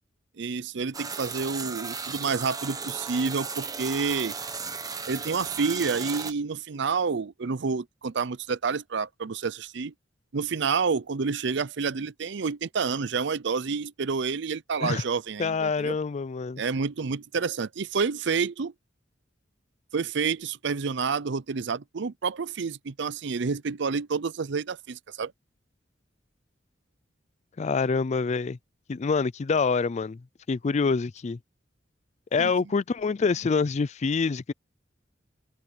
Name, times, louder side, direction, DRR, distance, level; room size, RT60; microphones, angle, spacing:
voice 1, 0.4-4.4 5.1-9.9 10.3-15.9 16.6-18.7 19.9-25.3 32.4-32.5, right 5 dB, 65° right, 0.6 m, -29 dB
sound 1, 0.9-6.3, right 5 dB, 20° right, 1.1 m, -35 dB
voice 2, 15.4-16.6 27.6-28.6 28.9-30.2 30.5-31.4 32.3-34.5, left 4 dB, 35° left, 0.4 m, -26 dB
head